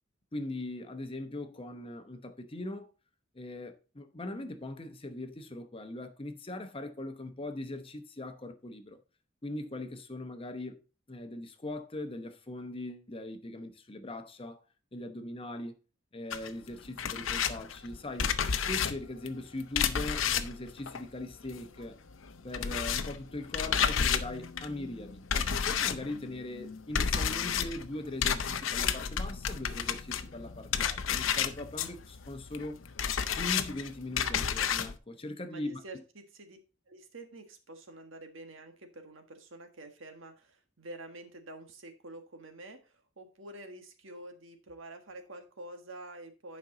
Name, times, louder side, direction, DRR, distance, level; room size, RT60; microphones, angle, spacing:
voice 1, 0.3-2.9 3.3-9.0 9.4-14.6 14.9-15.7 16.1-22.0 22.4-32.8 33.4-35.8, left 2 dB, 30° left, 0.9 m, -40 dB
sound 1, 16.3-21.8 22.1-35.0, left 7 dB, 80° left, 0.7 m, -32 dB
voice 2, 35.5-36.6 36.9-46.6, right 1 dB, 80° right, 1.5 m, -48 dB
10.5 x 5.3 x 3.8 m
head